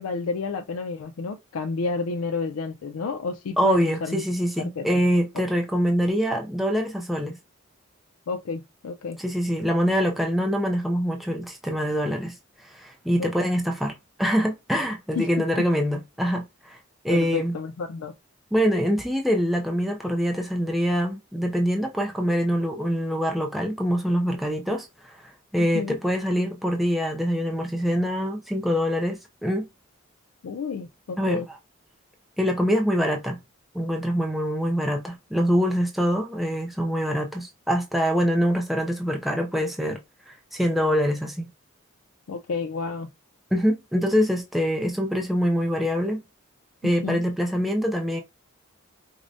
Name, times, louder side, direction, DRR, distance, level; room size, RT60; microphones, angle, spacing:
voice 1, 0.0-4.2 4.6-5.0 8.3-9.2 13.2-13.5 15.2-15.3 17.1-18.1 25.6-26.0 30.4-31.5 42.3-43.1 47.0-47.2, left 4 dB, 80° left, 0.4 m, -30 dB
voice 2, 3.6-7.4 9.2-12.4 12.6-16.8 17.0-17.6 18.5-29.7 31.2-31.6 32.4-33.4 33.7-40.0 40.3-41.5 43.5-46.2 46.8-48.2, equal, ahead, 0.3 m, -24 dB
4.7 x 2.1 x 2.5 m
head